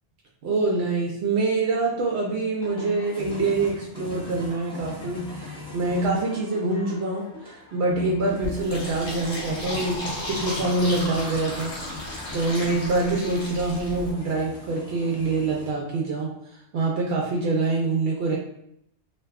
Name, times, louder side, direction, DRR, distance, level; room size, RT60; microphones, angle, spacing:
voice 1, 0.4-11.8 12.3-16.4 16.7-18.4, right 3 dB, 70° right, -2 dB, 0.8 m, -25 dB
sound 1, 2.6-15.7, left 3 dB, 5° left, 0.6 m, -40 dB
Fill (with liquid), 8.4-14.1, left 1 dB, 60° left, 1.1 m, -34 dB
2.5 x 2.2 x 3.5 m, 0.74 s
omnidirectional pair, 1.2 m